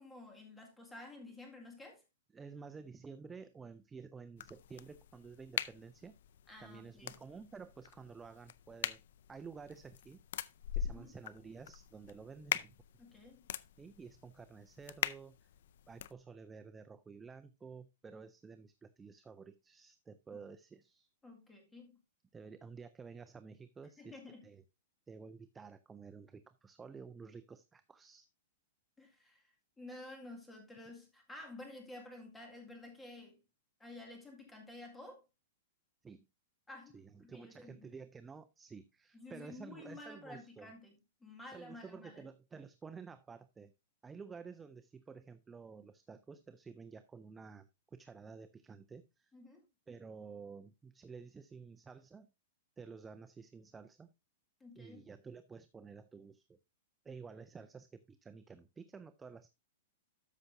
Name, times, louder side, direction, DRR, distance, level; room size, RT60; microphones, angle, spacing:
voice 1, 0.0-2.0 6.5-7.2 10.9-11.2 13.0-13.4 20.3-20.4 21.2-22.0 24.0-24.5 29.0-33.4 33.8-35.2 36.7-37.9 39.1-42.3 49.3-49.6 54.6-55.1, left 2 dB, 5° left, 1.9 m, -52 dB
voice 2, 2.3-6.1 6.6-9.0 9.3-10.2 10.7-12.7 13.8-15.5 15.9-21.1 22.3-24.6 25.1-28.3 36.0-36.3 36.9-40.7 41.5-43.7 44.0-49.3 49.9-52.3 52.8-54.1 54.8-56.6 57.0-59.5, right 5 dB, 10° right, 0.3 m, -52 dB
sound 1, 4.4-16.1, left 10 dB, 60° left, 0.4 m, -43 dB
13.0 x 5.7 x 2.6 m
supercardioid pair, 165°, 0 cm